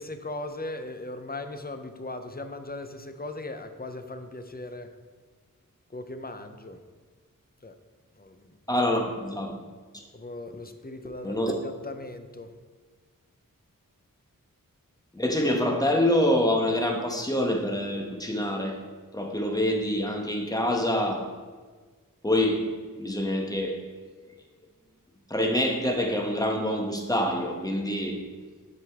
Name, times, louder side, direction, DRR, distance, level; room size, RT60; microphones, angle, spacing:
voice 1, 0.0-4.9 5.9-6.8 7.6-7.8 8.2-8.9 10.1-12.5, left 2 dB, 30° left, 8 dB, 0.5 m, -38 dB
voice 2, 8.7-9.6 9.9-10.0 11.2-11.5 15.1-18.8 19.1-21.3 22.2-22.7 23.0-23.8 25.3-28.2, left 1 dB, 10° left, 2 dB, 1.0 m, -26 dB
7.7 x 5.0 x 3.5 m, 1.4 s
wide cardioid pair, 40°, 34 cm